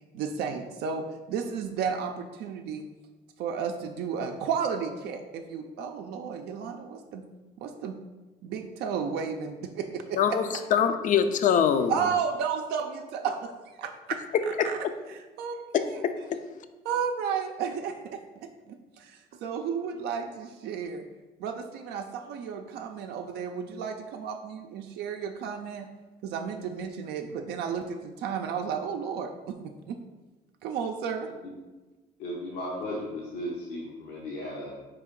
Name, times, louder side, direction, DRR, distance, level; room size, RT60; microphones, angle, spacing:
voice 1, 0.1-2.8 3.4-7.2 7.6-8.0 8.4-10.2 10.5-10.6 11.9-13.5 13.8-14.2 14.6-14.8 15.1-16.0 16.8-21.0 21.4-25.9 26.2-30.0 30.6-31.3, right 6 dB, 75° right, 4 dB, 0.4 m, -33 dB
voice 2, 10.2-12.0 14.6-14.7 15.7-16.1, left 8 dB, 50° left, 9 dB, 0.4 m, -23 dB
voice 3, 32.2-34.7, left 1 dB, 80° left, -4 dB, 0.8 m, -35 dB
4.3 x 3.3 x 3.7 m, 1.2 s
cardioid pair, 110°, 17 cm